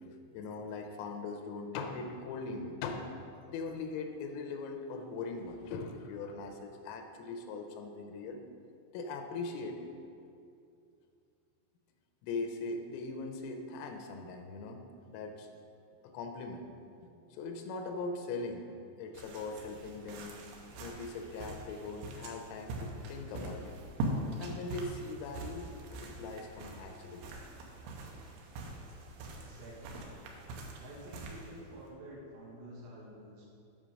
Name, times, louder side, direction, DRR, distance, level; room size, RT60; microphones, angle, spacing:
voice 1, 0.0-3.2 3.5-8.4 8.9-9.9 12.2-14.8 15.1-15.5 16.0-16.7 17.0-18.7 19.0-20.4 20.7-23.8 24.4-27.4, left 3 dB, 90° left, 5 dB, 3.4 m, -40 dB
sound 1, 19.1-31.9, right 2 dB, 90° right, 3.7 m, -43 dB
voice 2, 29.3-30.1 30.8-33.5, right 1 dB, 70° right, -5 dB, 3.7 m, -49 dB
8.9 x 5.2 x 6.2 m, 2.6 s
omnidirectional pair, 5.8 m